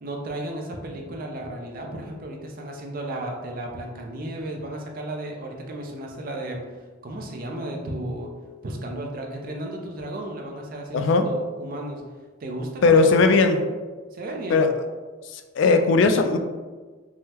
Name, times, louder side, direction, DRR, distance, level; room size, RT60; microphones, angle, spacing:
voice 1, 0.0-6.7 7.0-8.3 8.6-12.0 12.4-13.5 14.1-14.6, right 1 dB, 45° right, 1 dB, 0.5 m, -34 dB
voice 2, 10.9-11.2 12.8-13.6 14.5-14.7 15.3-16.4, left 4 dB, 65° left, 6 dB, 0.3 m, -18 dB
3.6 x 2.1 x 2.8 m, 1.3 s
head